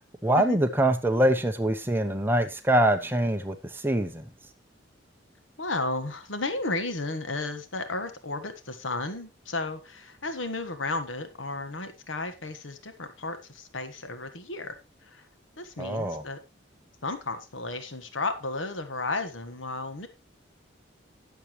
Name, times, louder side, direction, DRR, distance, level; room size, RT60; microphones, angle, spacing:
voice 1, 0.2-4.3 15.8-16.2, right 1 dB, 10° right, 0.7 m, -24 dB
voice 2, 5.6-15.3 15.6-16.4 17.0-20.1, left 2 dB, 85° left, 1.4 m, -33 dB
20.0 x 7.1 x 3.1 m
head